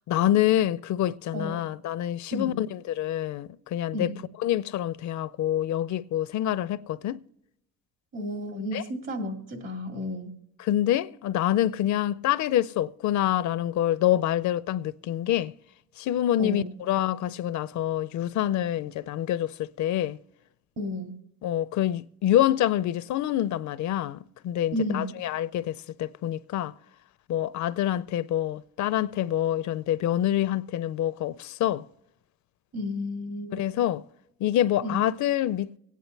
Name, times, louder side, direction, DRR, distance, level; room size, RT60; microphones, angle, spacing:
voice 1, 0.1-4.1 4.4-7.2 8.7-8.8 10.6-15.5 16.0-20.2 21.4-26.7 27.3-31.9 33.5-34.0 34.4-35.8, left 12 dB, 70° left, 0.5 m, -26 dB
voice 2, 8.1-10.3 16.4-16.7 20.8-21.1 24.7-25.2 32.7-33.7 34.8-35.0, left 1 dB, 60° right, 2.5 m, -32 dB
26.0 x 9.2 x 3.2 m
cardioid pair, 90°, 30 cm